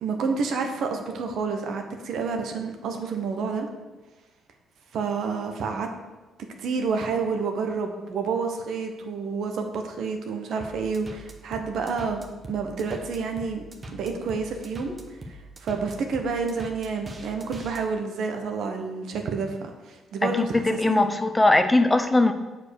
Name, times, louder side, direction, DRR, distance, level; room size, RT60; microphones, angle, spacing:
voice 1, 0.0-3.7 4.9-5.9 6.6-12.2 12.5-13.6 13.9-15.0 15.6-21.1, right 5 dB, 70° right, 4 dB, 1.2 m, -29 dB
sound 1, 10.6-17.8, right 1 dB, 30° right, 1.2 m, -41 dB
voice 2, 20.2-22.3, left 2 dB, 15° left, 8 dB, 0.6 m, -20 dB
7.6 x 4.7 x 6.5 m, 1.2 s
cardioid pair, 90°, 0 cm